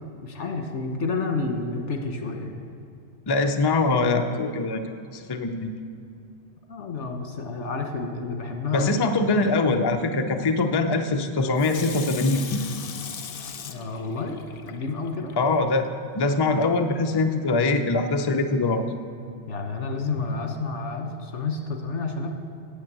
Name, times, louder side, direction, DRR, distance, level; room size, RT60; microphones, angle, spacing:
voice 1, 0.0-2.5 6.7-9.0 13.6-14.4 14.6-15.3 19.5-22.3, left 3 dB, 85° left, 4 dB, 1.6 m, -30 dB
voice 2, 3.3-5.7 8.7-12.6 15.4-15.9 16.1-18.8, left 3 dB, 30° left, 5 dB, 0.4 m, -23 dB
Water tap faucet / Sink (filling or washing), 11.6-15.3 15.8-15.9, left 7 dB, 60° left, 0.8 m, -38 dB
9.3 x 8.4 x 7.5 m, 2.5 s
omnidirectional pair, 1.2 m